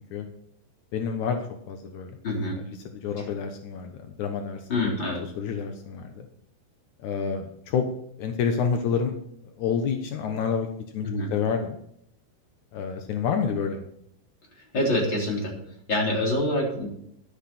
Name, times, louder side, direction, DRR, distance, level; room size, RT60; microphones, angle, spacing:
voice 1, 0.9-2.2 2.6-5.0 5.4-6.3 7.0-7.9 8.2-9.1 9.4-10.7 10.9-11.8 12.7-13.8, left 6 dB, 75° left, 5 dB, 1.7 m, -29 dB
voice 2, 2.2-2.6 3.2-3.3 4.7-5.2 11.0-11.3 14.7-15.5 15.9-16.9, left 1 dB, 25° left, -1 dB, 3.9 m, -25 dB
12.0 x 12.0 x 4.3 m, 0.72 s
omnidirectional pair, 5.1 m